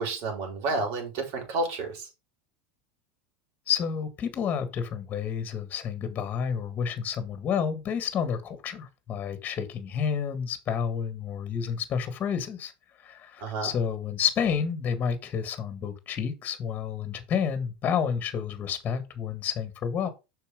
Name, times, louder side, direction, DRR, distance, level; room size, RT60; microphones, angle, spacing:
voice 1, 0.0-2.0 13.4-13.7, right 3 dB, 55° right, 5.0 m, -30 dB
voice 2, 3.7-12.7 13.0-20.1, left 7 dB, 30° left, 1.7 m, -30 dB
7.1 x 5.7 x 5.2 m
supercardioid pair, 130°, 5 cm